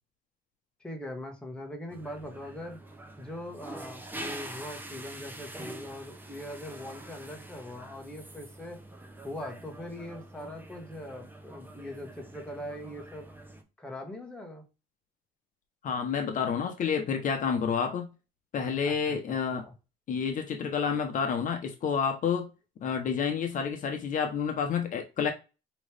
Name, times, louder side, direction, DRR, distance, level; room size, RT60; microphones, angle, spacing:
voice 1, 0.8-2.8 3.2-8.8 9.2-13.3 13.8-14.6 18.8-19.7, left 1 dB, 5° left, 1.3 m, -41 dB
sound 1, 1.9-13.6, right 1 dB, 10° right, 0.9 m, -45 dB
voice 2, 15.8-18.1 18.5-19.6 20.1-22.5 22.8-25.3, left 6 dB, 50° left, 0.9 m, -29 dB
5.1 x 3.1 x 3.3 m
cardioid pair, 110°, 17 cm